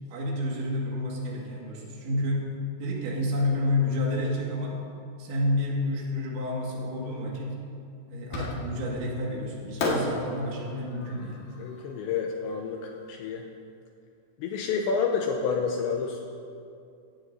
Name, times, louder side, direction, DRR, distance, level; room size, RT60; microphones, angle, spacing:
voice 1, 0.1-2.5 2.8-4.8 5.2-7.6 8.1-11.4, left 1 dB, 70° right, -3 dB, 3.9 m, -29 dB
Fireworks, 8.3-9.0 9.8-12.9, left 2 dB, 60° left, 2.5 m, -33 dB
voice 2, 11.6-13.5 14.4-16.2, left 5 dB, 85° left, 2 dB, 2.6 m, -29 dB
16.5 x 15.5 x 2.6 m, 2.5 s
omnidirectional pair, 5.8 m